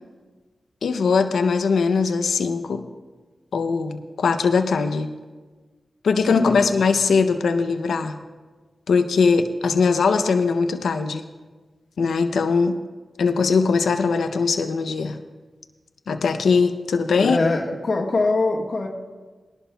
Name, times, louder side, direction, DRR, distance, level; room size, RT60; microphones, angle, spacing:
voice 1, 0.8-2.9 3.5-5.1 6.0-8.2 8.9-11.2 12.0-12.8 13.2-15.2 16.1-17.4, left 5 dB, 90° left, 8 dB, 0.5 m, -20 dB
voice 2, 6.3-6.7 17.1-18.9, left 3 dB, 65° left, -1 dB, 1.3 m, -23 dB
20.5 x 11.5 x 2.2 m, 1.3 s
cardioid pair, 50°, 0 cm